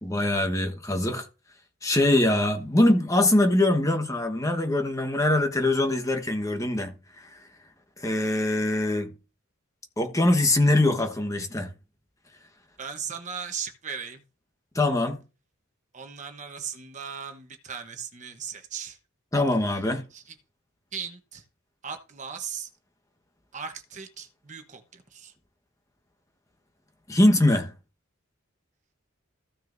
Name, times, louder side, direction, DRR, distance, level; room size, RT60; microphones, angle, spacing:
voice 1, 0.0-1.3 1.8-7.4 8.0-9.1 10.0-11.7 14.7-15.2 19.3-20.1 27.1-27.7, left 1 dB, 15° left, 1.2 m, -23 dB
voice 2, 12.8-14.2 15.9-19.0 20.1-20.2 20.9-21.4 21.8-22.7 23.5-24.8 25.1-25.3, right 7 dB, 35° right, 1.0 m, -37 dB
15.0 x 6.2 x 2.6 m
head